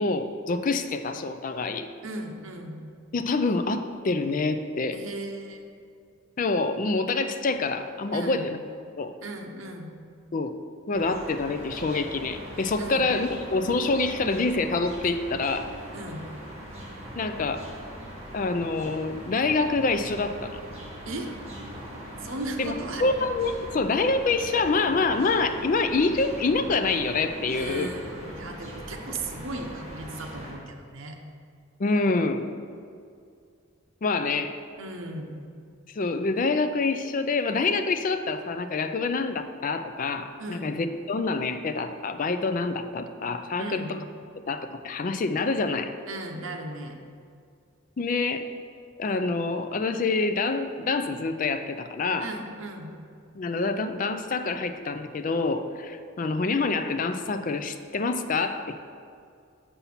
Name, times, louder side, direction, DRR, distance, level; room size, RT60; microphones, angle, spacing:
voice 1, 0.0-1.9 3.1-5.0 6.4-8.6 9.0-9.1 10.3-10.5 10.9-15.7 17.2-17.7 18.3-20.6 22.6-27.9 31.8-32.5 34.0-34.6 36.0-44.0 44.5-45.9 48.0-48.4 49.0-52.4 53.4-58.7, left 3 dB, 40° left, 9 dB, 0.4 m, -26 dB
voice 2, 2.0-2.8 4.9-5.7 8.1-8.5 9.2-10.0 12.8-13.1 15.9-16.3 21.1-21.3 22.2-23.0 27.5-31.2 34.8-35.3 40.4-40.7 43.6-43.9 46.1-47.0 52.2-53.0, right 2 dB, 70° right, 3 dB, 0.9 m, -36 dB
sound 1, 10.9-30.5, right 1 dB, 30° right, 1.7 m, -41 dB
6.9 x 5.6 x 5.8 m, 2.3 s
head